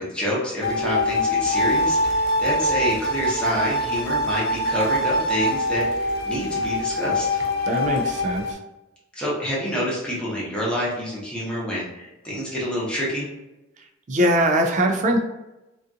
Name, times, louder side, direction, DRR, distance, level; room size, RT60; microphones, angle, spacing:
voice 1, 0.0-7.3 9.1-13.3, equal, 5° left, -7 dB, 0.8 m, -27 dB
sound 1, 0.6-8.5, left 1 dB, 50° left, 0.4 m, -24 dB
voice 2, 7.7-8.6 14.1-15.2, right 1 dB, 35° right, 2 dB, 0.3 m, -21 dB
2.5 x 2.3 x 2.5 m, 0.98 s
head